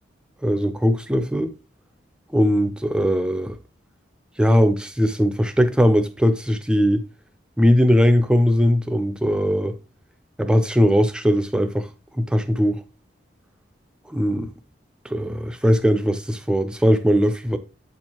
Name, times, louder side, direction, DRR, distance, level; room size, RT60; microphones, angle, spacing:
voice 1, 0.4-1.5 2.3-3.6 4.4-7.1 7.6-9.8 10.4-11.9 12.1-12.8 14.1-14.5 15.0-17.6, equal, 5° right, 0.4 m, -19 dB
8.1 x 4.4 x 2.9 m
head